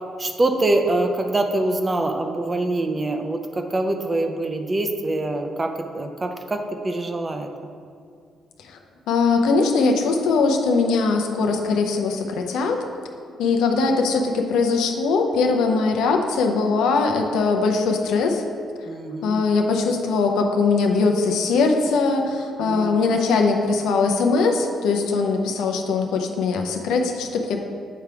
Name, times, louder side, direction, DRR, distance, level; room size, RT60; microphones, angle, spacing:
voice 1, 0.2-7.7 18.9-19.5 22.6-23.0, right 2 dB, 25° right, 5 dB, 0.6 m, -24 dB
voice 2, 9.1-12.8 13.4-18.4 19.2-27.6, left 4 dB, 85° left, 3 dB, 0.7 m, -21 dB
8.7 x 3.4 x 4.7 m, 2.3 s
cardioid pair, 90°, 0 cm